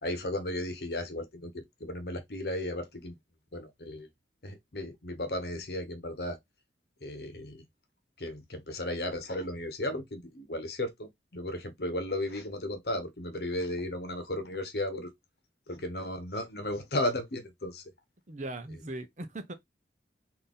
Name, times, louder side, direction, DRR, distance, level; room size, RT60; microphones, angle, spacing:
voice 1, 0.0-3.2 3.5-4.1 4.4-6.4 7.0-7.6 8.2-15.1 15.7-17.8, left 1 dB, 65° left, 1.0 m, -35 dB
voice 2, 18.3-19.5, right 2 dB, 45° right, 0.7 m, -39 dB
3.9 x 2.7 x 3.6 m
head